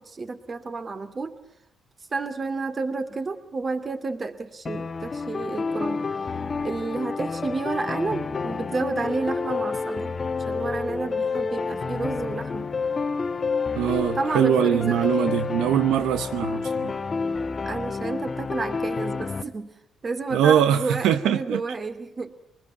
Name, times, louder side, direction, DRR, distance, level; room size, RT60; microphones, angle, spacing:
voice 1, 0.0-1.3 2.1-6.0 6.6-10.2 10.5-12.7 14.1-15.4 17.6-19.7 20.0-22.3, right 3 dB, 35° right, 2.5 m, -30 dB
sound 1, 4.7-19.4, left 4 dB, 35° left, 1.1 m, -29 dB
voice 2, 13.8-16.9 20.3-21.6, right 10 dB, 85° right, 0.9 m, -22 dB
25.0 x 20.0 x 9.4 m
cardioid pair, 90°, 0 cm